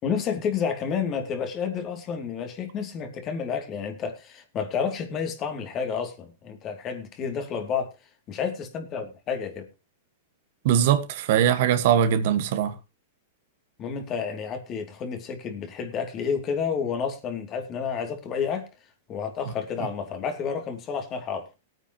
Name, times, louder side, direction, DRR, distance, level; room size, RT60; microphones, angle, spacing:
voice 1, 0.0-7.9 8.3-9.7 13.8-18.7 19.1-21.5, left 6 dB, 30° left, 2.7 m, -30 dB
voice 2, 10.6-12.7, right 9 dB, 60° right, 1.5 m, -21 dB
18.5 x 9.1 x 3.0 m
hypercardioid pair, 135°, 0 cm